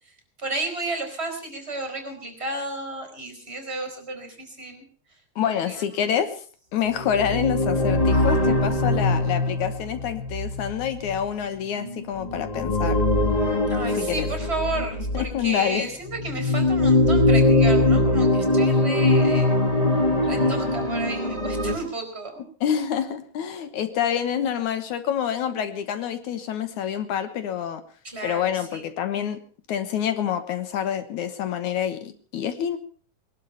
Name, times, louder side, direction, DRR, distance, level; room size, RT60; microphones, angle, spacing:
voice 1, 0.4-4.8 5.4-5.8 13.7-19.6 20.2-22.4 28.0-28.9, right 2 dB, 20° right, 5 dB, 4.4 m, -32 dB
voice 2, 5.4-6.3 6.7-13.0 13.9-14.3 15.1-15.9 22.6-27.8 28.2-29.4 29.7-32.8, left 9 dB, 75° left, 10 dB, 2.6 m, -27 dB
sound 1, 6.9-15.4 16.0-21.7, left 2 dB, 25° left, 0.9 m, -22 dB
21.0 x 12.0 x 5.6 m, 0.43 s
omnidirectional pair, 3.5 m